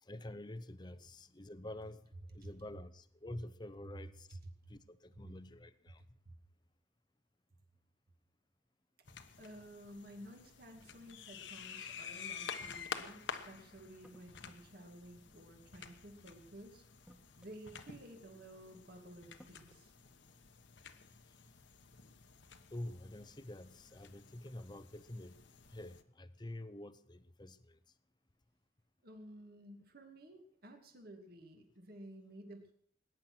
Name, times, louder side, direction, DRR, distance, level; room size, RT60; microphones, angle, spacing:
voice 1, 0.0-4.4 4.7-6.0 22.7-25.4 25.7-27.8, left 1 dB, 20° left, 13 dB, 0.8 m, -48 dB
sound 1, 9.1-26.0, left 6 dB, 65° left, 1.2 m, -50 dB
voice 2, 9.4-17.1 17.4-19.9 29.0-32.7, right 1 dB, 50° right, 4 dB, 2.3 m, -53 dB
sound 2, 14.0-14.7 16.1-16.3 17.0-17.7 18.8-18.9 19.4-19.8, equal, 5° right, 1.5 m, -62 dB
20.0 x 10.5 x 6.1 m, 0.66 s
head